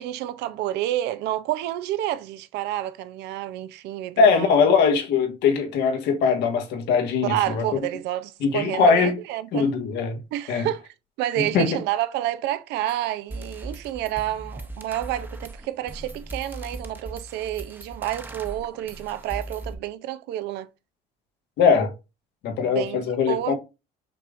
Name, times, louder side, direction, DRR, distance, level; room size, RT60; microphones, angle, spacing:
voice 1, 0.0-4.7 7.2-9.7 10.3-10.9 11.2-20.7 22.6-23.5, right 13 dB, 85° right, 0.6 m, -29 dB
voice 2, 4.2-7.6 8.4-9.2 9.5-10.2 10.5-10.7 11.4-11.8 21.6-21.9 22.4-23.5, left 5 dB, 85° left, 1.5 m, -21 dB
sound 1, 12.9-13.0 13.3-19.7, right 2 dB, 10° right, 0.8 m, -38 dB
5.7 x 3.5 x 2.5 m
cardioid pair, 110°, 17 cm